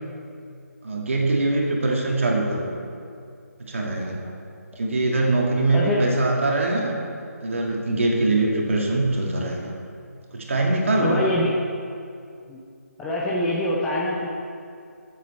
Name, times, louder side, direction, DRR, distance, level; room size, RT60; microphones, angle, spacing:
voice 1, 0.8-2.6 3.6-4.2 4.8-6.9 7.4-9.7 10.3-11.3, right 2 dB, 50° right, -1 dB, 2.1 m, -23 dB
voice 2, 5.3-6.0 11.0-11.5 12.5-12.6 13.0-14.3, left 1 dB, 5° left, -4 dB, 0.6 m, -25 dB
13.0 x 7.6 x 4.3 m, 2.4 s
figure-of-eight pair, 155°, 9 cm